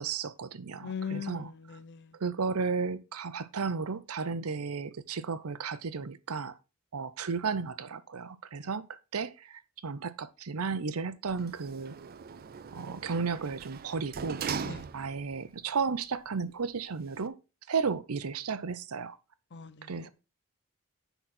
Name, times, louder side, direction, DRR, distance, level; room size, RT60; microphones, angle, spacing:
voice 1, 0.0-1.5 2.2-6.5 6.9-8.9 9.1-12.0 12.7-14.4 14.9-17.4 17.7-19.2 19.9-20.1, right 5 dB, 85° right, 0.7 m, -33 dB
voice 2, 0.8-2.2 14.6-14.9 19.5-20.1, left 6 dB, 55° left, 0.7 m, -40 dB
Sliding door, 11.3-15.4 15.8-15.9, right 6 dB, 45° right, 0.5 m, -40 dB
10.0 x 4.0 x 4.3 m
head